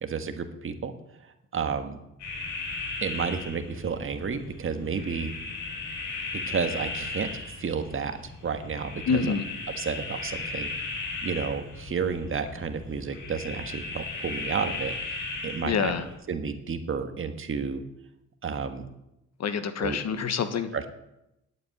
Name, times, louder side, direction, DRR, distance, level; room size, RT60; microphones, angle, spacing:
voice 1, 0.0-0.9 1.5-2.0 3.0-5.3 6.5-7.3 7.6-8.2 8.4-9.3 9.7-10.7 11.2-15.9 16.3-17.8 18.4-18.9 19.8-20.0 20.7-20.9, right 5 dB, 45° right, 7 dB, 1.5 m, -31 dB
sound 1, 2.2-16.1, left 3 dB, 80° left, 6.3 m, -36 dB
voice 2, 9.1-9.4 15.6-16.1 19.4-20.7, left 6 dB, 60° left, 10 dB, 1.4 m, -26 dB
10.0 x 8.5 x 9.5 m, 0.87 s
cardioid pair, 90°, 30 cm